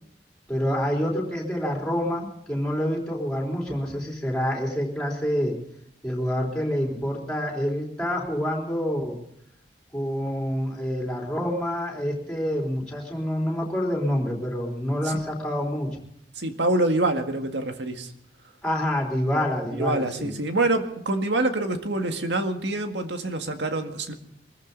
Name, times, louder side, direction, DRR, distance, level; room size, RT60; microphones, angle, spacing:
voice 1, 0.5-5.6 6.0-9.2 9.9-15.9 18.6-20.3, equal, 5° left, -1 dB, 3.8 m, -27 dB
voice 2, 16.4-18.1 19.7-24.1, right 2 dB, 80° right, 6 dB, 1.9 m, -26 dB
24.5 x 14.5 x 4.0 m, 0.72 s
head